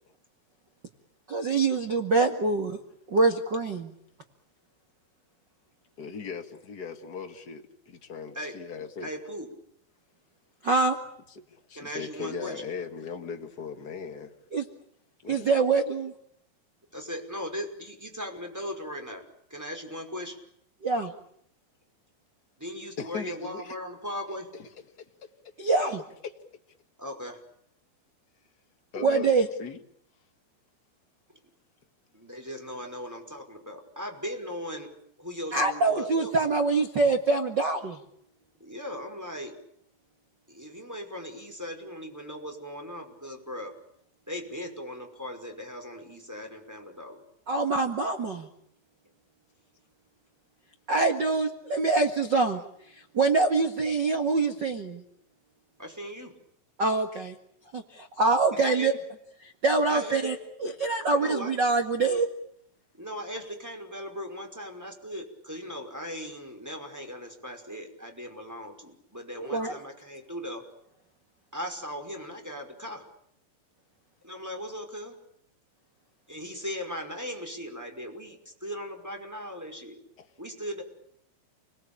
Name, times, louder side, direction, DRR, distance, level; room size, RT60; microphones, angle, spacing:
voice 1, 1.3-2.8 3.1-3.9 10.6-10.9 14.5-14.6 15.3-16.1 20.8-21.1 25.6-26.0 28.9-29.5 35.5-38.0 47.5-48.5 50.9-52.6 53.1-55.0 56.8-57.3 57.7-58.9 59.4-60.3 60.6-62.3 69.4-69.8, right 3 dB, 70° right, 1.0 m, -25 dB
voice 2, 6.0-9.1 11.5-14.3 15.2-15.5 23.0-23.8 25.2-25.3 26.2-26.3 28.9-29.3 29.6-29.8 80.2-80.3, left 5 dB, 50° left, 1.1 m, -38 dB
voice 3, 9.0-9.5 11.7-12.6 16.9-19.2 19.5-20.4 22.6-24.5 27.0-27.4 32.1-34.9 35.2-36.3 38.6-39.6 40.5-43.7 44.3-47.2 55.8-56.3 58.5-58.9 59.9-60.3 61.0-61.5 62.9-70.6 71.5-73.0 74.2-75.2 76.3-80.0 80.4-80.8, equal, 5° right, 4.8 m, -38 dB
29.5 x 21.0 x 8.7 m
omnidirectional pair, 5.3 m